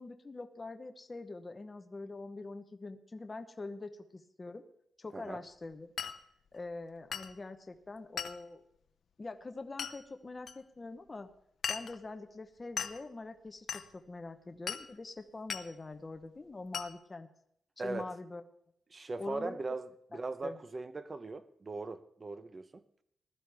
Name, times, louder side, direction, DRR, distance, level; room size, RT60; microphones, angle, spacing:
voice 1, 0.0-4.6 5.0-5.9 6.5-8.6 9.2-11.3 11.7-17.3 17.8-18.4 19.2-19.6 20.4-20.6, left 3 dB, 25° left, 0.9 m, -44 dB
Glass, 6.0-6.2 7.1-7.3 8.2-8.4 9.8-10.0 10.5-10.6 11.6-12.0 12.8-13.0 13.7-13.9 14.7-14.9 15.5-15.7 16.7-16.9, left 7 dB, 70° left, 0.7 m, -37 dB
voice 2, 17.8-18.1 18.9-22.8, right 3 dB, 30° right, 0.8 m, -40 dB
20.0 x 12.5 x 3.5 m
wide cardioid pair, 120°, 0 cm